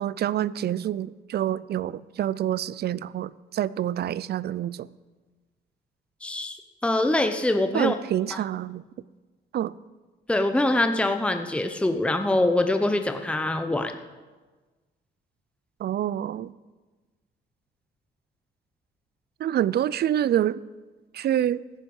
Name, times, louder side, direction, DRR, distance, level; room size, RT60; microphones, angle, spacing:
voice 1, 0.0-4.9 7.7-8.8 9.5-9.7 15.8-16.5 19.4-20.6 21.1-21.6, right 11 dB, 55° right, 20 dB, 0.4 m, -27 dB
voice 2, 6.2-8.0 8.3-8.4 10.3-14.0, left 2 dB, 5° left, 7 dB, 0.9 m, -24 dB
14.5 x 9.9 x 5.5 m, 1.3 s
cardioid pair, 90°, 20 cm